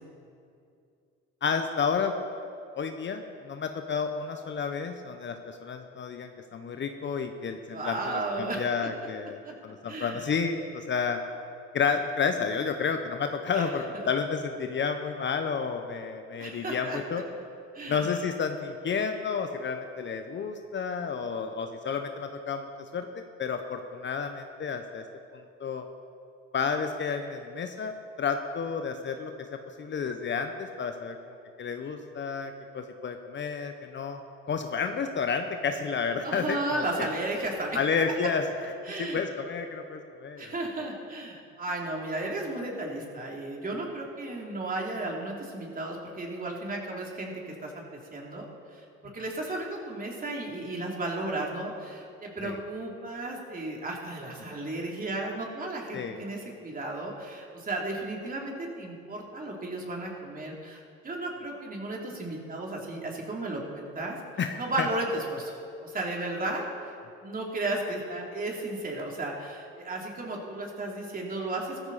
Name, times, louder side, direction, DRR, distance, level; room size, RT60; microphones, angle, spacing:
voice 1, 1.4-2.1 2.8-11.2 11.7-17.2 17.9-22.6 22.9-25.0 25.6-25.9 26.5-34.2 34.5-37.1 37.7-38.4 39.0-40.5 52.4-52.6 55.9-56.2 64.4-64.9, left 5 dB, 40° left, 7 dB, 1.0 m, -31 dB
voice 2, 7.7-8.8 9.4-9.5 9.9-10.3 13.5-13.7 16.4-17.0 17.7-18.2 36.2-37.8 38.8-39.2 40.4-64.2 64.6-65.5 65.8-66.9 67.2-71.9, right 2 dB, 30° right, -1 dB, 3.3 m, -34 dB
15.0 x 14.0 x 4.2 m, 2.5 s
supercardioid pair, 80°, 30 cm